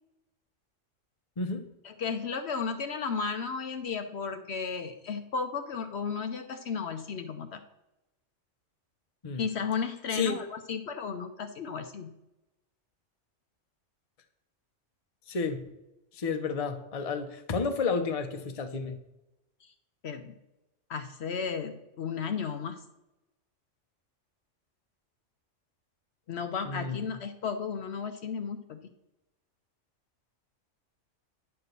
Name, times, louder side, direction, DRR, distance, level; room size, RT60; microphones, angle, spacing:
voice 1, 1.8-7.6 9.4-12.1 20.0-20.3 20.9-22.8 26.3-28.8, left 5 dB, 60° left, 7 dB, 0.9 m, -34 dB
voice 2, 15.3-15.6 16.1-19.0 26.7-27.1, left 4 dB, 35° left, 6 dB, 0.8 m, -31 dB
9.7 x 4.5 x 6.7 m, 0.94 s
omnidirectional pair, 1.3 m